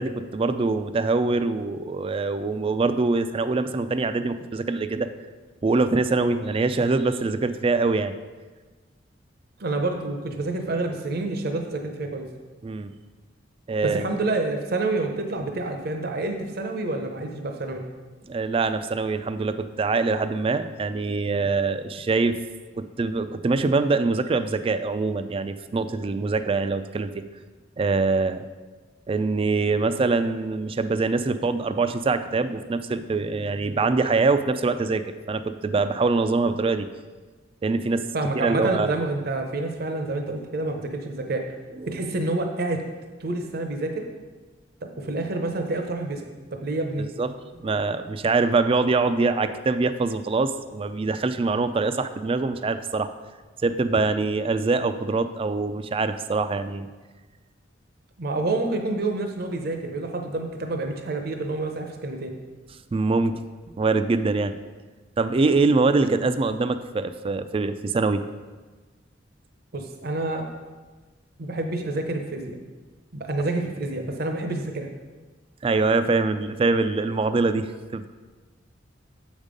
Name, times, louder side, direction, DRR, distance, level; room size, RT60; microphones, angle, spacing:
voice 1, 0.0-5.1 5.6-8.1 12.6-12.9 13.7-14.1 18.3-22.4 22.8-27.3 27.8-28.4 29.1-36.9 37.6-38.1 38.3-39.0 41.2-41.3 41.8-41.9 47.0-47.3 47.6-53.1 53.6-56.9 62.9-63.4 63.8-64.6 65.2-68.2 75.6-78.1, right 3 dB, 30° right, 11 dB, 0.3 m, -24 dB
voice 2, 9.6-12.3 13.8-17.8 38.1-41.5 41.9-42.8 43.2-44.1 44.8-47.1 58.2-62.3 69.7-70.4 71.4-72.6 73.1-74.9, right 2 dB, 55° right, 4 dB, 0.7 m, -28 dB
7.2 x 5.3 x 5.1 m, 1.3 s
head